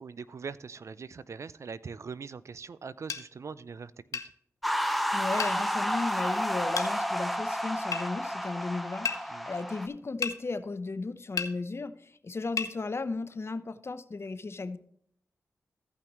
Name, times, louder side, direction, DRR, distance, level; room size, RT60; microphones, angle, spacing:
voice 1, 0.0-4.2 9.3-9.5, right 5 dB, 60° right, 17 dB, 0.5 m, -42 dB
sound 1, 3.1-3.3 4.1-4.3 5.4-5.6 6.8-6.9 7.9-8.1 9.1-9.2 10.2-10.4 11.4-11.5 12.6-12.7, left 6 dB, 85° left, 0.8 m, -32 dB
sound 2, 4.6-9.9, equal, ahead, 1.0 m, -31 dB
voice 2, 5.1-14.8, left 3 dB, 50° left, 12 dB, 0.9 m, -35 dB
15.5 x 5.8 x 3.1 m, 0.66 s
cardioid pair, 45°, 6 cm